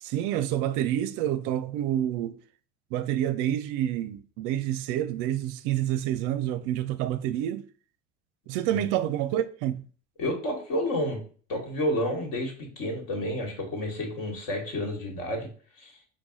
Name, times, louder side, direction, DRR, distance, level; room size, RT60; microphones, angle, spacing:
voice 1, 0.0-2.4 2.9-7.6 8.5-9.8, right 11 dB, 50° right, 0.5 m, -28 dB
voice 2, 10.2-11.2 11.5-15.5 15.8-15.9, left 1 dB, 55° left, 1.6 m, -30 dB
4.6 x 2.3 x 3.8 m
figure-of-eight pair, 70°, 38 cm